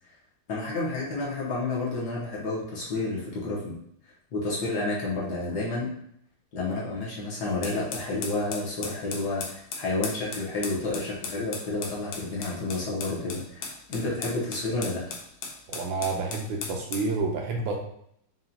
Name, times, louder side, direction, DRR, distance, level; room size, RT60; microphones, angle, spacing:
voice 1, 0.5-3.7 4.3-5.9 6.5-15.0, left 2 dB, 60° left, -5 dB, 1.3 m, -30 dB
sound 1, 7.6-17.1, left 4 dB, 75° left, 0.9 m, -37 dB
voice 2, 15.7-17.8, right 3 dB, 75° right, 1 dB, 1.2 m, -29 dB
5.6 x 2.3 x 2.6 m, 0.70 s
omnidirectional pair, 2.3 m